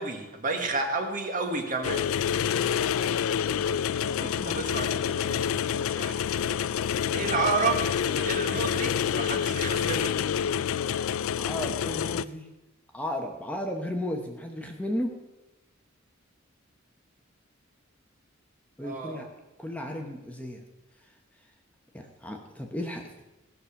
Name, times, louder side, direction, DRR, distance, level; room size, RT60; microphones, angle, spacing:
voice 1, 0.0-2.1 4.2-6.2 7.1-10.1 18.8-19.2, right 3 dB, 40° right, 4 dB, 1.6 m, -31 dB
sound 1, 1.8-12.2, left 8 dB, 80° left, 0.3 m, -28 dB
voice 2, 11.4-12.5 12.9-15.2 18.8-19.3 19.6-20.6 21.9-23.2, left 1 dB, 5° left, 2 dB, 1.0 m, -34 dB
16.5 x 6.8 x 5.8 m, 1.0 s
head